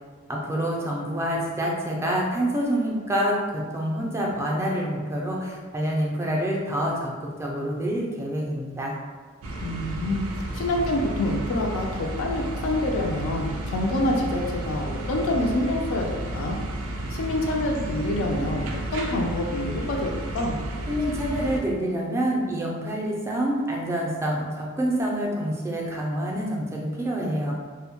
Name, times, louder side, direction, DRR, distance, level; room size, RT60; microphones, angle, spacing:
voice 1, 0.3-8.9 20.9-27.5, equal, 15° right, -3 dB, 0.3 m, -27 dB
sound 1, 9.4-21.6, right 1 dB, 90° right, 0.4 m, -32 dB
voice 2, 9.6-10.2 10.5-16.6 17.1-18.6 18.9-20.6, left 1 dB, 75° left, 0 dB, 0.3 m, -27 dB
2.1 x 2.1 x 2.8 m, 1.4 s
head